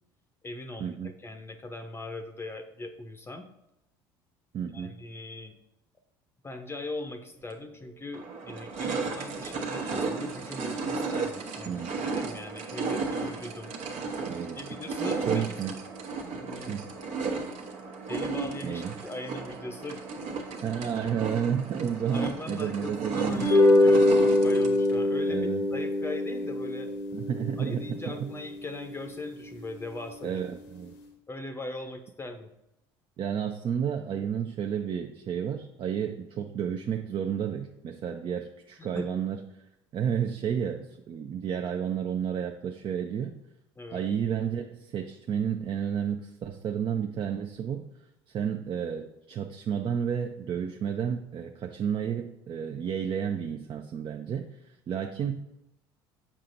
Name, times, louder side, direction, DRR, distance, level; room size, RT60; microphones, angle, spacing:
voice 1, 0.4-3.5 4.7-5.5 6.4-13.7 14.5-15.8 16.3-16.8 18.1-20.1 22.1-26.9 27.6-30.4 31.3-32.5 38.8-39.2 43.8-44.1, left 2 dB, 20° left, 6 dB, 0.6 m, -40 dB
voice 2, 4.5-5.0 11.7-12.2 14.3-14.6 15.3-15.7 16.7-16.8 18.6-18.9 20.6-23.5 25.3-25.6 27.1-27.8 30.2-30.9 33.2-39.4 39.9-43.3 43.9-47.9 48.3-55.3, right 8 dB, 45° right, 4 dB, 0.5 m, -31 dB
sound 1, 7.5-7.6 8.1-24.9, right 4 dB, 70° right, 1.1 m, -34 dB
sound 2, 23.3-29.8, left 2 dB, 85° left, 1.0 m, -24 dB
7.4 x 5.7 x 2.6 m, 0.89 s
hypercardioid pair, 75°, 12 cm